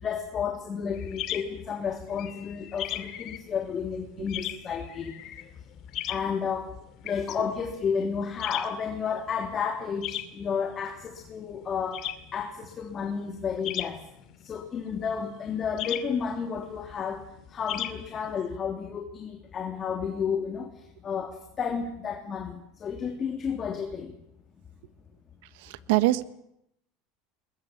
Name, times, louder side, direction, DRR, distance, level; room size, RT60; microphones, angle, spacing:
voice 1, 0.0-5.1 6.1-6.7 7.0-12.0 12.3-14.0 14.4-17.2 17.5-20.7 21.0-24.1, left 6 dB, 35° left, 4 dB, 3.1 m, -31 dB
sound 1, 0.9-18.6, left 13 dB, 55° left, 2.4 m, -39 dB
voice 2, 25.5-26.3, right 18 dB, 75° right, 15 dB, 1.3 m, -24 dB
21.0 x 21.0 x 8.7 m, 0.80 s
supercardioid pair, 95°, 0 cm